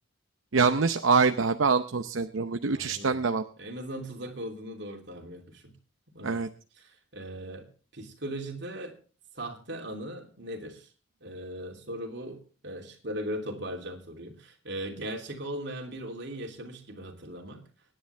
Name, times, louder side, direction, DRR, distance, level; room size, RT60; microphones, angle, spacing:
voice 1, 0.5-3.4 6.2-6.5, right 4 dB, 80° right, 8 dB, 0.7 m, -25 dB
voice 2, 2.7-3.2 3.6-5.8 6.1-6.4 6.8-8.9 9.3-10.9 11.2-17.6, right 1 dB, 60° right, 2 dB, 3.0 m, -39 dB
24.5 x 10.0 x 3.4 m, 0.38 s
head